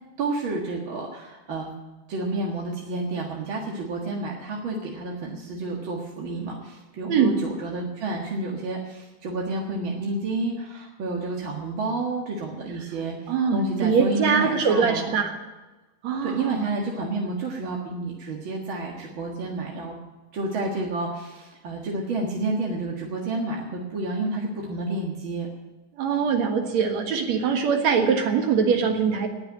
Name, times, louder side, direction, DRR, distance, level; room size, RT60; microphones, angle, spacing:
voice 1, 0.2-1.7 2.1-15.1 16.2-20.0 20.3-25.5, right 2 dB, 45° right, -2 dB, 2.2 m, -30 dB
voice 2, 13.3-15.3 16.0-16.7 26.0-29.3, right 6 dB, 70° right, 4 dB, 2.9 m, -22 dB
19.5 x 6.9 x 9.3 m, 1.1 s
omnidirectional pair, 3.3 m